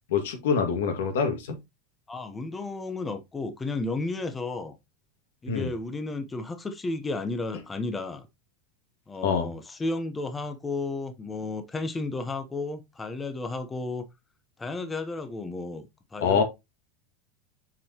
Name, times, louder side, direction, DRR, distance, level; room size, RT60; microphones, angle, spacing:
voice 1, 0.1-1.6 5.5-5.7 9.2-9.5 16.2-16.4, left 6 dB, 85° left, 1.9 m, -25 dB
voice 2, 2.1-4.7 5.4-8.3 9.1-14.1 14.6-15.8 16.1-16.4, left 3 dB, 15° left, 0.7 m, -33 dB
7.4 x 4.7 x 2.8 m
supercardioid pair, 135°, 0 cm